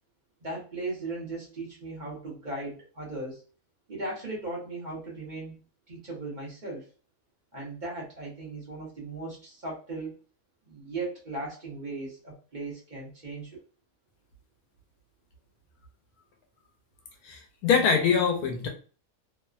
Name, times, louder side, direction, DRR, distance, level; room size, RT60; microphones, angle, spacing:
voice 1, 0.4-3.4 3.9-6.8 7.5-10.2 10.6-13.6, right 2 dB, 35° right, 0.9 m, -37 dB
voice 2, 17.2-18.7, left 6 dB, 80° left, 1.1 m, -24 dB
2.9 x 2.1 x 2.4 m
omnidirectional pair, 1.6 m